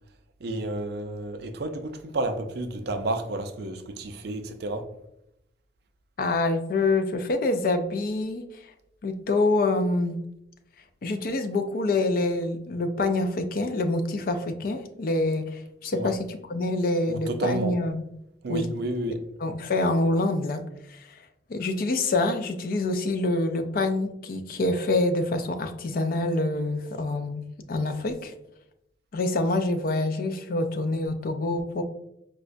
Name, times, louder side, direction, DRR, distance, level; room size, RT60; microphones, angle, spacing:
voice 1, 0.4-4.9 15.9-16.1 17.1-17.8 18.4-19.2, right 2 dB, 55° right, 0.4 m, -31 dB
voice 2, 6.2-8.4 9.0-10.2 11.0-18.0 18.5-18.7 19.4-21.2 21.5-28.3 29.1-31.8, left 2 dB, 50° left, 0.3 m, -26 dB
4.7 x 2.1 x 2.5 m
head